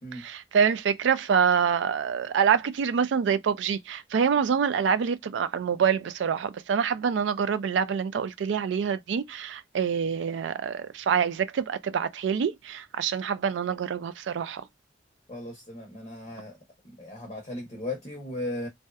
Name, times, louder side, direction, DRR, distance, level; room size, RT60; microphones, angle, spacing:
voice 1, 0.1-14.6, right 7 dB, 75° right, 0.3 m, -26 dB
voice 2, 15.3-16.5 16.8-18.7, left 1 dB, 35° left, 0.7 m, -36 dB
2.7 x 2.1 x 2.3 m
head